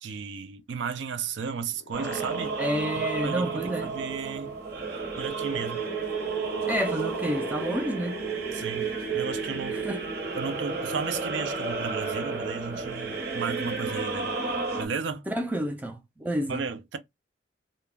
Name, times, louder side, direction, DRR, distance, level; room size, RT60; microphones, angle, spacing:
voice 1, 0.0-2.6 2.9-4.6 5.2-5.9 8.5-9.9 10.3-14.3 14.8-15.3 16.5-17.0, right 5 dB, 75° right, 0.4 m, -34 dB
sound 1, 1.3-2.9 3.3-3.4 4.7-9.5, left 3 dB, 70° left, 0.4 m, -42 dB
sound 2, 1.9-14.9, right 4 dB, 55° right, 0.9 m, -32 dB
voice 2, 2.6-3.9 6.7-8.2 9.8-10.0 15.3-16.6, equal, 10° right, 0.4 m, -29 dB
2.3 x 2.1 x 3.2 m
head